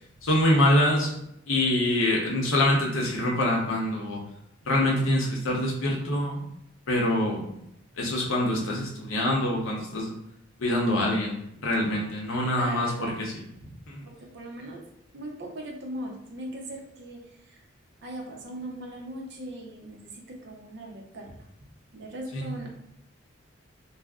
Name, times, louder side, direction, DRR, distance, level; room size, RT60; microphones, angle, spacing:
voice 1, 0.2-1.1 1.5-4.2 4.7-6.4 6.9-7.4 8.0-10.2 10.6-13.4 13.9-14.0 22.3-22.6, left 1 dB, 75° left, -1 dB, 0.7 m, -25 dB
voice 2, 12.6-13.1 13.6-13.7 14.0-14.8 15.1-17.6 18.0-21.3 21.9-22.7, right 1 dB, 55° right, 0 dB, 0.6 m, -39 dB
2.4 x 2.0 x 3.5 m, 0.79 s
head